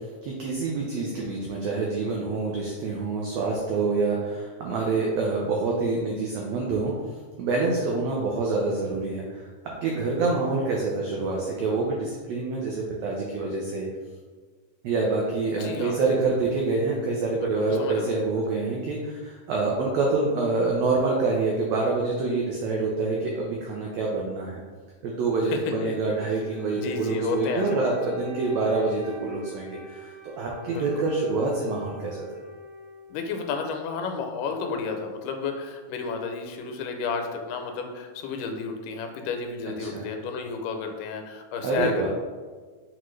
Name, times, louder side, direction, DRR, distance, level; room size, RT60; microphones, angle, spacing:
voice 1, 0.2-6.9 7.4-9.5 9.8-13.9 14.8-24.6 25.0-32.3 39.8-40.0 41.6-42.1, right 3 dB, 90° right, -2 dB, 1.5 m, -26 dB
voice 2, 15.6-16.2 17.4-18.1 25.5-25.9 26.2-26.4 26.7-28.2 30.6-31.1 33.1-42.1, left 5 dB, 90° left, 4 dB, 2.1 m, -32 dB
Wind instrument woodwind instrument, 26.1-33.6, right 2 dB, 70° right, 1.9 m, -44 dB
5.9 x 2.3 x 3.1 m, 1.5 s
omnidirectional pair, 3.6 m